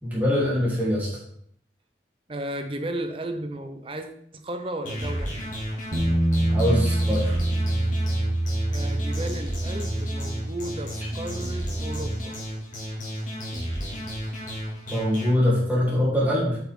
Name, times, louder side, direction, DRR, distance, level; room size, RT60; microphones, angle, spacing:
voice 1, 0.0-1.1 6.5-7.4 14.9-16.6, left 1 dB, 10° right, -8 dB, 3.2 m, -23 dB
voice 2, 2.3-5.3 8.7-12.4, right 1 dB, 30° right, 6 dB, 0.6 m, -34 dB
sound 1, 4.8-15.3, equal, 45° left, 2.5 m, -33 dB
Bass guitar, 5.9-12.2, right 1 dB, 50° right, 1.2 m, -26 dB
8.5 x 6.0 x 3.7 m, 0.66 s
head